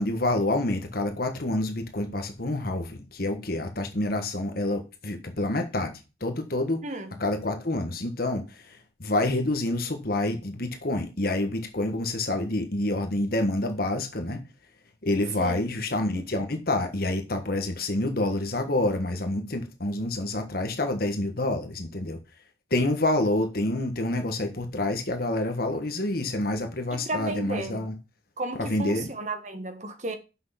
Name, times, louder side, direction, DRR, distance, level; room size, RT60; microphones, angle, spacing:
voice 1, 0.0-6.8 7.2-14.4 15.0-22.2 22.7-27.9 28.6-29.1, left 2 dB, 50° left, 1.4 m, -28 dB
voice 2, 6.8-7.2 15.4-15.7 26.9-27.9 28.4-30.2, right 2 dB, 40° right, 1.3 m, -33 dB
7.7 x 6.3 x 5.8 m
head